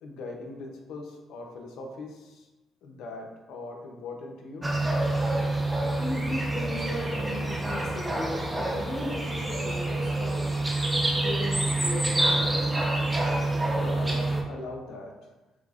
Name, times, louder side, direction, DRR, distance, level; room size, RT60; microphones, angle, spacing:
voice 1, 0.0-2.5 2.8-4.7 13.7-15.1, left 2 dB, 85° left, 1 dB, 0.6 m, -40 dB
sound 1, 4.6-14.4, right 2 dB, 15° right, 0.6 m, -27 dB
voice 2, 5.9-10.5 11.1-12.9, left 1 dB, 55° left, -4 dB, 1.2 m, -36 dB
6.0 x 2.1 x 2.4 m, 1.1 s
cardioid pair, 90°, 0 cm